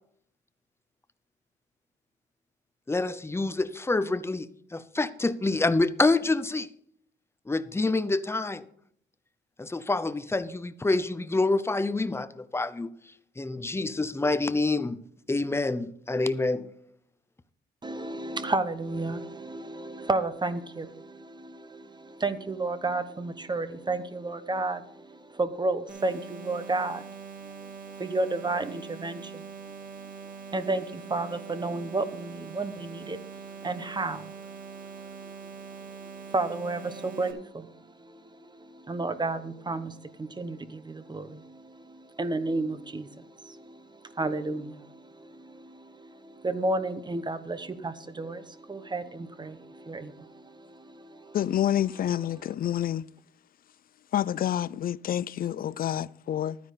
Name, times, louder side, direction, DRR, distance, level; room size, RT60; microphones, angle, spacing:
voice 1, 2.9-6.7 7.5-8.6 9.6-12.9 13.4-15.0 15.3-16.7, left 2 dB, 10° left, 0.7 m, -27 dB
voice 2, 17.8-51.4 52.3-52.5, right 2 dB, 20° right, 1.0 m, -33 dB
sound 1, 25.9-37.3, right 6 dB, 40° right, 2.5 m, -43 dB
voice 3, 51.3-53.0 54.1-56.6, left 11 dB, 50° left, 0.4 m, -28 dB
12.0 x 9.8 x 4.1 m
cardioid pair, 90°, 20 cm